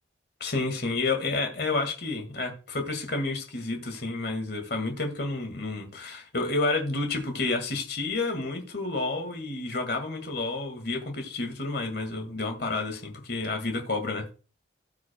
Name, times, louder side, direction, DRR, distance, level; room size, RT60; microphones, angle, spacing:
voice 1, 0.4-14.2, left 3 dB, 55° left, 1.9 m, -30 dB
18.0 x 6.2 x 2.2 m
head